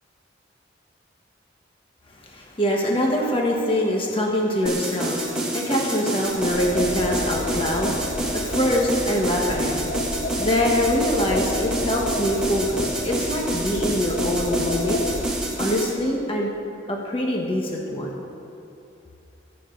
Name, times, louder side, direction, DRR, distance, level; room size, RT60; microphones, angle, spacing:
voice 1, 2.1-9.8 10.4-15.0 15.6-16.5 16.9-18.1, left 1 dB, 30° left, -1 dB, 1.3 m, -24 dB
sound 1, 4.7-15.9, right 1 dB, 5° right, 1.9 m, -28 dB
sound 2, 6.2-15.4, left 1 dB, 50° left, 0.9 m, -31 dB
21.5 x 9.3 x 3.9 m, 2.8 s
head